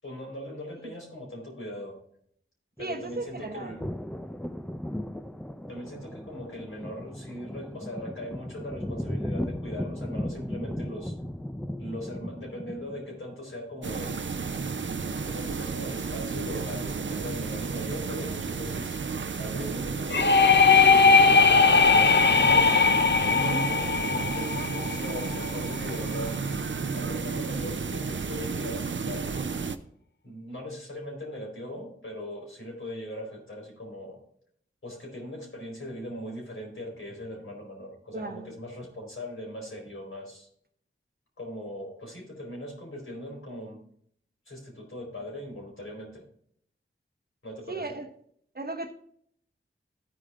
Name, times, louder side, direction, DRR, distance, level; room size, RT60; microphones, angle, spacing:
voice 1, 0.0-2.0 2.8-3.8 5.7-11.2 11.8-14.4 15.2-19.0 19.4-22.7 23.2-26.6 26.9-29.5 30.2-34.2 34.8-40.5 41.4-43.8 44.5-46.2 47.4-48.0, left 1 dB, 75° left, -1 dB, 4.3 m, -40 dB
sound 1, 2.8-13.2, left 1 dB, 5° left, 0.5 m, -36 dB
voice 2, 2.8-3.8 23.4-23.8 38.1-38.5 47.7-48.1 48.5-48.9, right 2 dB, 45° right, 6 dB, 1.0 m, -36 dB
sound 2, 13.8-29.8, right 5 dB, 65° right, 0.6 m, -32 dB
sound 3, 20.1-25.8, left 5 dB, 55° left, 0.5 m, -20 dB
14.0 x 4.9 x 3.7 m, 0.65 s
wide cardioid pair, 60°, 21 cm